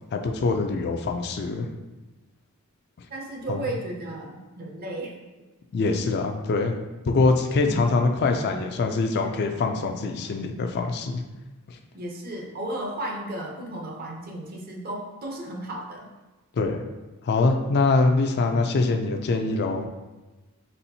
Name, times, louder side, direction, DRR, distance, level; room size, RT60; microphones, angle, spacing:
voice 1, 0.1-1.7 3.5-3.6 5.7-6.8 7.1-11.2 11.7-11.8 16.5-16.8 17.2-19.9, left 3 dB, 50° left, 5 dB, 0.4 m, -24 dB
voice 2, 3.1-5.2 7.6-7.8 11.9-16.1, right 1 dB, 40° right, 1 dB, 0.7 m, -34 dB
4.2 x 3.9 x 2.7 m, 1.1 s
head